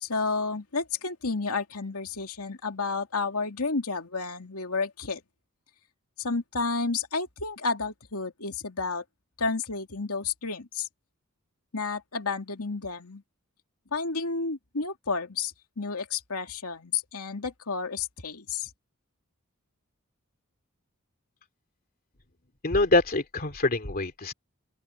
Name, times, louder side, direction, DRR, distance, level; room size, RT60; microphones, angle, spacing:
voice 1, 0.0-5.2 6.2-9.0 9.4-10.9 11.7-13.2 13.9-18.7, left 4 dB, 90° left, 2.6 m, -31 dB
voice 2, 22.6-24.3, left 2 dB, 45° left, 2.7 m, -25 dB
open air
head